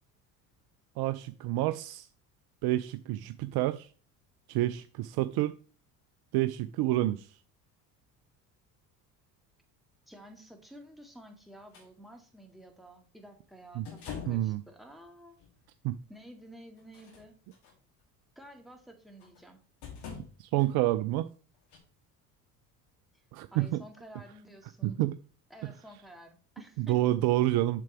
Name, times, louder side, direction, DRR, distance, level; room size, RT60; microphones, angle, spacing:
voice 1, 1.0-2.1 2.6-3.9 4.5-5.5 6.3-7.3 13.8-13.9 14.3-14.6 15.8-16.0 20.4-21.3 23.3-23.8 24.8-25.2 26.8-27.8, right 15 dB, 50° right, 0.5 m, -28 dB
voice 2, 10.1-15.4 16.1-17.3 18.4-19.6 23.5-25.0 25.5-27.0, equal, ahead, 2.1 m, -51 dB
sound 1, 11.7-11.9 13.8-14.5 15.4-15.5 16.8-17.7 19.2-19.4 19.8-20.7 21.7-21.8, left 7 dB, 55° left, 2.8 m, -44 dB
7.5 x 6.7 x 3.4 m
hypercardioid pair, 60°, 48 cm